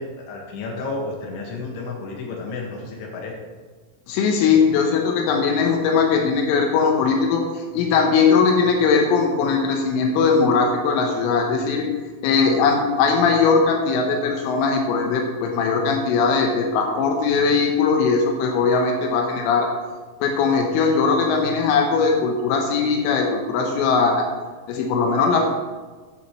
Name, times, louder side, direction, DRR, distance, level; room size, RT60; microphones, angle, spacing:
voice 1, 0.0-3.3, left 3 dB, 65° left, -1 dB, 3.2 m, -31 dB
voice 2, 4.1-11.9 12.2-19.7 20.2-24.3 24.7-25.5, left 5 dB, 85° left, 2 dB, 3.4 m, -19 dB
11.0 x 9.3 x 3.1 m, 1.4 s
omnidirectional pair, 5.6 m